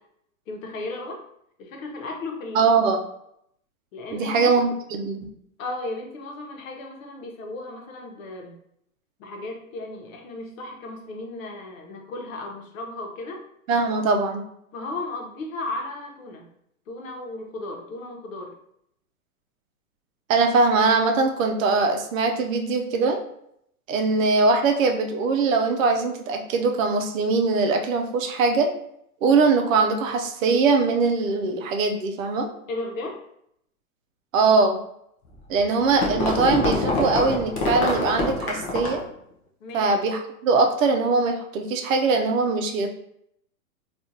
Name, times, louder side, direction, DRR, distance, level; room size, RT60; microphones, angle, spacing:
voice 1, 0.5-1.2 1.6-2.6 3.9-4.5 5.6-8.5 9.2-13.5 14.7-16.5 16.9-18.5 32.7-33.2 39.6-39.9, left 2 dB, 65° left, 1 dB, 1.0 m, -35 dB
voice 2, 2.5-3.0 4.1-5.3 13.7-14.4 20.3-23.2 23.9-28.7 29.2-32.5 34.3-34.8 35.5-39.0 39.7-42.9, right 4 dB, 60° right, 4 dB, 0.7 m, -21 dB
sound 1, 35.3-39.1, left 2 dB, 25° left, 0.4 m, -26 dB
3.5 x 2.5 x 2.7 m, 0.74 s
hypercardioid pair, 130°, 44 cm